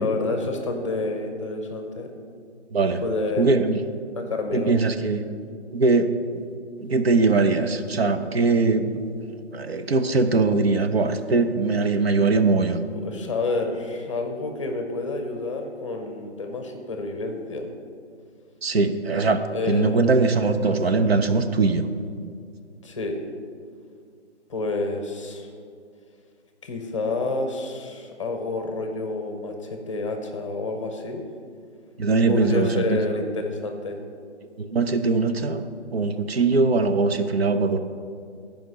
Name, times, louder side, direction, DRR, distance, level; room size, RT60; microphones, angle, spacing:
voice 1, 0.0-2.1 3.0-3.5 4.1-4.8 12.9-17.7 19.5-20.1 22.8-23.2 24.5-25.5 26.6-31.2 32.3-34.0 37.6-37.8, left 3 dB, 25° left, 4 dB, 0.8 m, -29 dB
voice 2, 2.7-3.0 3.4-3.8 4.5-5.2 5.7-6.4 6.8-12.8 18.6-21.9 32.0-33.0 34.6-35.6 35.9-37.8, right 3 dB, 60° right, 8 dB, 0.7 m, -21 dB
11.0 x 5.2 x 6.3 m, 2.2 s
figure-of-eight pair, 150°, 35 cm